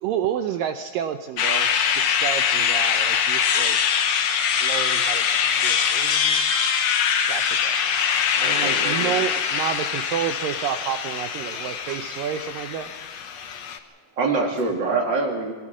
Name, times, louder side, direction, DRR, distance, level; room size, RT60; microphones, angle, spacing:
voice 1, 0.0-3.8 4.6-5.2 5.6-6.7 7.3-7.8 8.4-12.9 14.9-15.0, right 9 dB, 80° right, 7 dB, 2.0 m, -30 dB
sound 1, 1.4-13.8, left 7 dB, 75° left, 1.5 m, -23 dB
voice 2, 5.9-6.6 6.9-7.3 8.0-8.2 13.5-14.2, right 3 dB, 50° right, -2 dB, 5.1 m, -63 dB
voice 3, 8.4-9.2 14.2-15.5, right 3 dB, 30° right, 1 dB, 2.6 m, -25 dB
23.5 x 18.5 x 6.1 m, 1.4 s
omnidirectional pair, 4.8 m